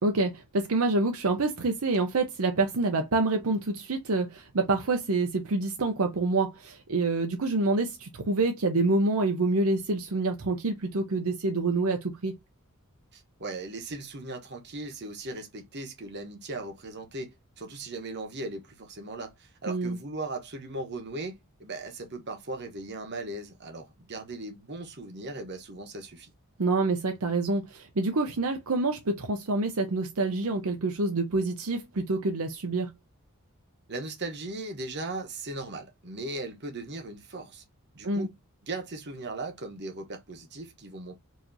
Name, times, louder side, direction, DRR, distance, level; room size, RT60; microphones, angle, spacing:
voice 1, 0.0-12.3 19.7-20.0 26.6-32.9 38.0-38.3, right 3 dB, 70° right, 0.7 m, -27 dB
voice 2, 13.1-26.3 33.9-37.6 37.9-38.3 38.6-41.2, right 2 dB, 50° right, 1.1 m, -38 dB
4.7 x 2.9 x 2.7 m
head